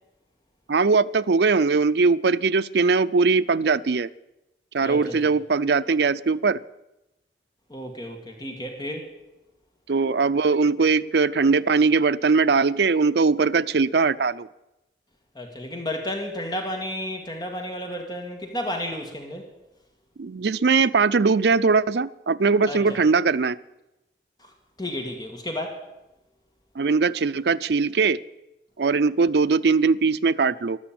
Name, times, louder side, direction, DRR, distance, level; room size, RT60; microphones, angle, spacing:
voice 1, 0.7-4.1 4.7-6.6 9.9-14.5 20.2-23.6 26.8-28.2 28.8-30.8, right 4 dB, 65° right, 14 dB, 0.5 m, -20 dB
voice 2, 4.8-5.3 7.7-9.1 15.4-19.5 22.7-23.0 24.4-24.5 24.8-25.8, left 1 dB, 20° left, 3 dB, 2.0 m, -32 dB
13.5 x 12.0 x 8.7 m, 0.94 s
head